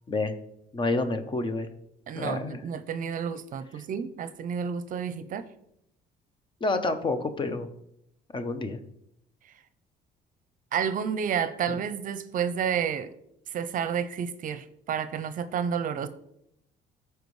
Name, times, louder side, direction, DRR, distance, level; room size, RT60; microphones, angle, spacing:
voice 1, 0.7-1.7 2.1-2.6 6.6-7.7 8.3-8.8 11.7-11.8, left 3 dB, 30° left, 9 dB, 0.8 m, -28 dB
voice 2, 2.1-5.5 10.7-13.1 13.5-16.1, right 7 dB, 50° right, 12 dB, 0.6 m, -30 dB
14.0 x 4.7 x 3.2 m, 0.76 s
cardioid pair, 110°, 17 cm